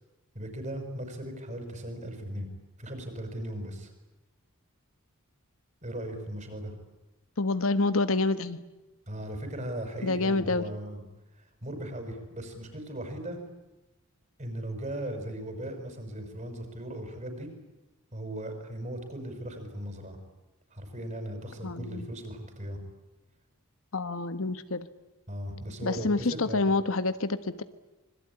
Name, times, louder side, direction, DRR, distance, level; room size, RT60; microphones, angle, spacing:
voice 1, 0.3-2.5 2.8-3.9 5.8-6.7 9.1-11.0 11.6-13.4 14.4-17.5 18.1-20.2 20.7-22.8 25.3-26.7, right 1 dB, 35° right, 6 dB, 6.0 m, -38 dB
voice 2, 7.4-8.6 10.0-10.7 21.6-22.1 23.9-24.9 25.8-27.6, left 3 dB, 65° left, 12 dB, 1.3 m, -27 dB
26.0 x 22.0 x 9.9 m, 1.0 s
head